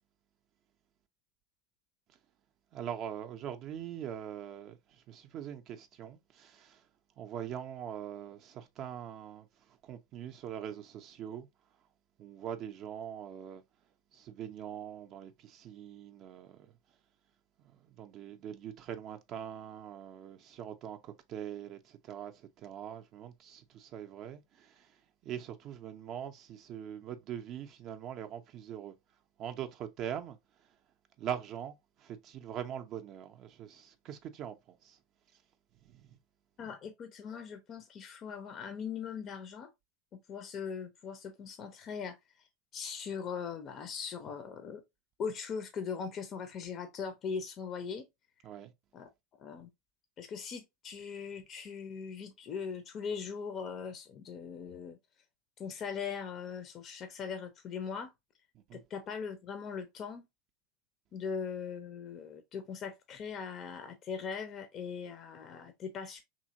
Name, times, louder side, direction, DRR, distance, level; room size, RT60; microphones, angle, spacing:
voice 1, 2.7-6.9 7.2-11.5 12.2-13.6 14.1-16.7 17.6-28.9 29.4-30.8 31.2-35.0 35.8-36.2 48.4-48.7 58.5-58.8, right 9 dB, 45° right, 0.4 m, -43 dB
voice 2, 36.6-39.7 40.1-42.5 42.7-44.8 45.2-48.1 48.9-49.1 49.4-49.7 50.2-55.0 55.6-58.1 58.7-60.3 61.1-66.2, left 6 dB, 40° left, 0.4 m, -40 dB
2.8 x 2.7 x 2.6 m
figure-of-eight pair, 80°, 0 cm